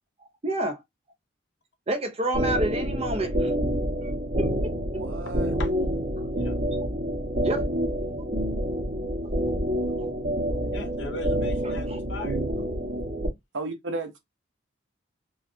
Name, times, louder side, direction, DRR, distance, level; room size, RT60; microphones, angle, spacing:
voice 1, 0.4-0.8 1.9-3.5 4.0-4.1 4.4-4.5 6.2-6.3 7.4-7.6 11.9-12.0, right 1 dB, 30° right, 0.7 m, -28 dB
sound 1, 2.3-13.3, equal, 55° right, 1.6 m, -27 dB
voice 2, 4.9-5.5 13.5-14.2, right 2 dB, 70° right, 1.0 m, -33 dB
voice 3, 10.7-12.4, left 2 dB, 65° left, 0.8 m, -38 dB
4.9 x 2.3 x 2.8 m
head